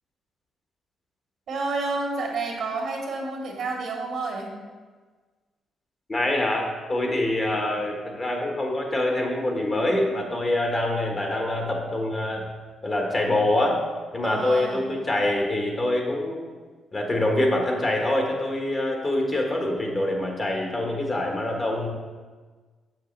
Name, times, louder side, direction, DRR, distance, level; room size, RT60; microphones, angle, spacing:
voice 1, 1.5-4.5 14.2-14.9, right 3 dB, 70° right, 0 dB, 1.7 m, -29 dB
voice 2, 6.1-12.4 12.8-13.8 14.1-16.4 16.9-21.9, left 1 dB, 35° left, 1 dB, 1.6 m, -25 dB
7.4 x 6.6 x 3.4 m, 1.4 s
supercardioid pair, 60°, 0 cm